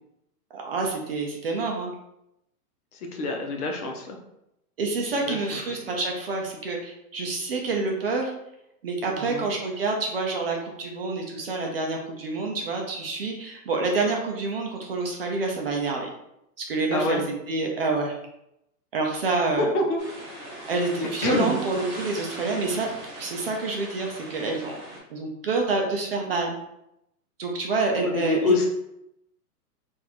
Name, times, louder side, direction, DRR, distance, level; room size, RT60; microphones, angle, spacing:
voice 1, 0.5-1.9 4.8-8.3 8.8-16.1 16.6-17.2 17.5-18.1 18.9-19.7 20.7-22.9 23.2-24.8 25.1-26.5 27.4-28.5, right 3 dB, 40° right, 0 dB, 0.4 m, -27 dB
voice 2, 2.9-4.2 5.2-5.6 9.1-9.5 16.9-17.2 19.6-20.0 21.2-21.6 28.0-28.7, left 2 dB, 65° left, 2 dB, 1.0 m, -26 dB
sound 1, 20.0-25.0, right 1 dB, 15° right, 0.7 m, -40 dB
3.8 x 2.6 x 2.9 m, 0.83 s
hypercardioid pair, 160°, 48 cm